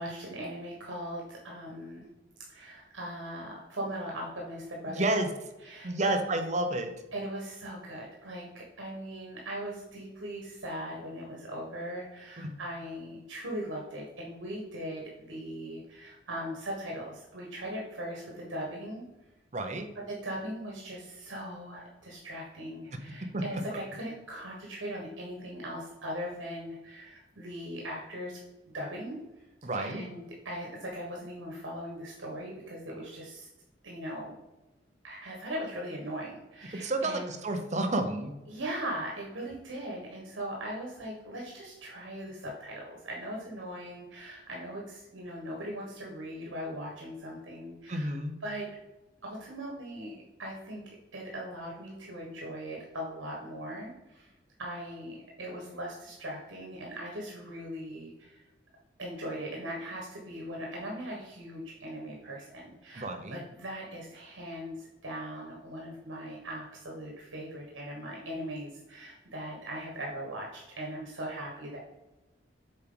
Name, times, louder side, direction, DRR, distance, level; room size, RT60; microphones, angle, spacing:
voice 1, 0.0-2.1 2.5-5.3 5.6-6.2 7.1-19.0 19.9-28.4 28.7-29.2 29.7-33.5 33.8-34.4 35.0-37.3 38.5-48.7 49.2-54.3 54.6-58.4 59.0-71.8, equal, 85° right, -2 dB, 1.4 m, -39 dB
voice 2, 4.9-5.3 5.8-6.9 12.4-12.5 19.5-19.9 22.9-23.0 23.3-23.8 29.6-30.0 36.8-38.3 47.9-48.3 62.9-63.4, right 2 dB, 40° right, 6 dB, 0.8 m, -30 dB
7.4 x 4.5 x 3.8 m, 1.0 s
head